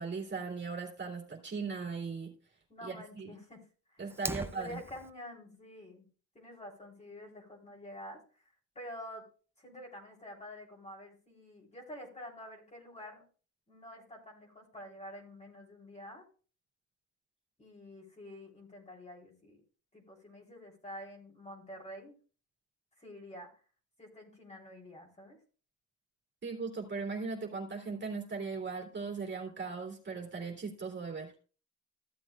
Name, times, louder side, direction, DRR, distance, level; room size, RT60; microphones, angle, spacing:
voice 1, 0.0-2.3 2.8-3.3 4.0-4.8 26.4-31.3, right 4 dB, 35° right, -1 dB, 2.9 m, -38 dB
voice 2, 2.7-3.6 3.9-4.0 4.4-6.1 6.3-8.2 8.7-9.2 9.6-13.2 13.7-16.2 17.6-19.6 19.9-22.1 23.0-23.5 24.0-25.4, left 1 dB, 20° left, -1 dB, 3.4 m, -48 dB
Fire, 4.1-5.1, right 2 dB, 10° right, 0.5 m, -39 dB
15.0 x 7.7 x 2.3 m, 0.38 s
cardioid pair, 90°, 30 cm